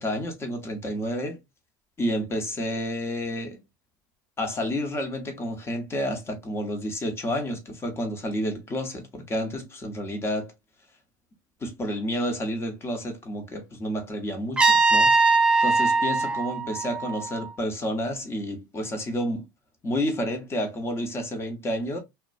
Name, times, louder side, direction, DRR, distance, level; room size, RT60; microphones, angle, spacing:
voice 1, 0.0-1.4 2.0-3.6 4.4-10.5 11.6-19.5 19.8-22.0, equal, 25° left, 0.8 m, -30 dB
Trumpet, 14.6-17.5, right 3 dB, 10° right, 0.5 m, -21 dB
2.4 x 2.1 x 2.4 m
hypercardioid pair, 100°, 11 cm